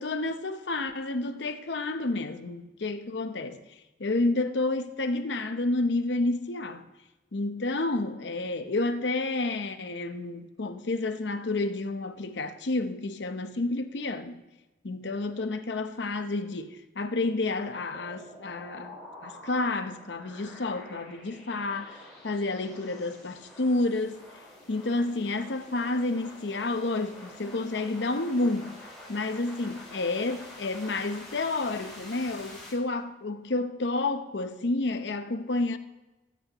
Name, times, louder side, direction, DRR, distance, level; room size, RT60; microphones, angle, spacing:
voice 1, 0.0-3.6 4.0-6.9 7.3-14.4 14.8-24.2 24.7-28.7 29.1-35.8, left 2 dB, 70° left, 0.8 m, -30 dB
sound 1, 17.9-32.7, left 1 dB, 5° left, 4.4 m, -47 dB
19.5 x 9.2 x 3.0 m
head